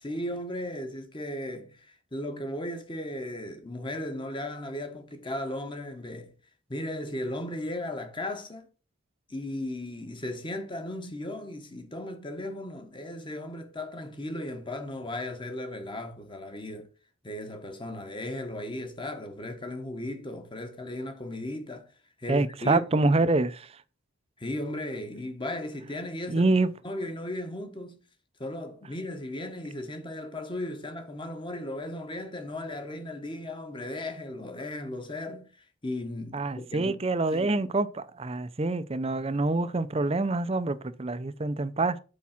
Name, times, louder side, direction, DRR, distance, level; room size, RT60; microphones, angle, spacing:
voice 1, 0.0-6.3 6.7-8.7 9.3-16.9 17.2-21.9 22.2-23.2 24.4-26.5 26.8-28.0 28.4-37.0 37.3-37.6, left 1 dB, 25° left, 1.1 m, -36 dB
voice 2, 22.3-23.8 26.3-26.7 36.3-42.0, right 2 dB, 30° right, 0.5 m, -26 dB
8.4 x 4.7 x 5.7 m
head